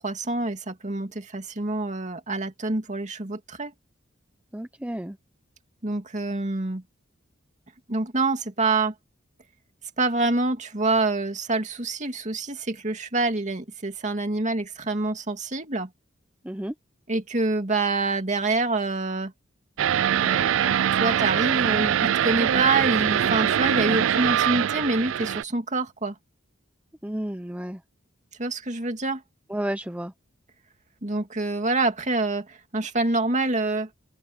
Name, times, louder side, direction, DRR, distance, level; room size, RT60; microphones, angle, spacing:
voice 1, 0.0-3.7 5.8-6.8 7.9-8.9 10.0-15.9 17.1-19.3 20.2-26.2 28.4-29.2 31.0-33.9, right 3 dB, 40° right, 2.4 m, -26 dB
voice 2, 4.5-5.2 16.4-16.7 27.0-27.8 29.5-30.1, right 1 dB, 5° right, 0.8 m, -31 dB
sound 1, 19.8-25.4, right 9 dB, 70° right, 0.4 m, -23 dB
open air
head